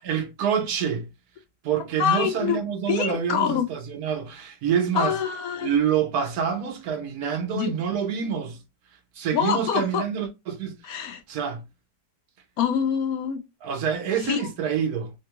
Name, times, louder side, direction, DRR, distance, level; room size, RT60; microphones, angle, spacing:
voice 1, 0.0-1.1 1.6-5.2 5.6-8.6 9.1-11.6 13.6-15.1, right 8 dB, 70° right, 1.0 m, -27 dB
voice 2, 2.0-2.6 2.9-3.7 4.9-5.7 7.5-7.7 9.3-10.0 10.8-11.2 12.6-13.4 14.2-14.4, left 8 dB, 65° left, 0.9 m, -25 dB
3.4 x 2.2 x 2.8 m
omnidirectional pair, 1.9 m